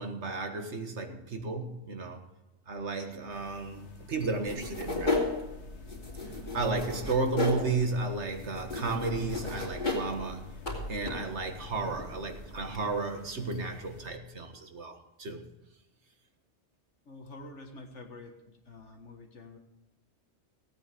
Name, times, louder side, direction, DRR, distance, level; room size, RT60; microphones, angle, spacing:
voice 1, 0.0-2.2 2.7-5.3 6.5-10.5 10.9-15.4, right 3 dB, 75° right, 5 dB, 1.8 m, -33 dB
sound 1, 3.3-14.1, left 4 dB, 75° left, 1.7 m, -51 dB
sound 2, 4.5-12.9, left 3 dB, 40° left, 3.3 m, -35 dB
voice 2, 17.1-19.6, left 2 dB, 90° left, 2 dB, 1.9 m, -48 dB
16.5 x 8.9 x 5.1 m, 0.97 s
omnidirectional pair, 1.2 m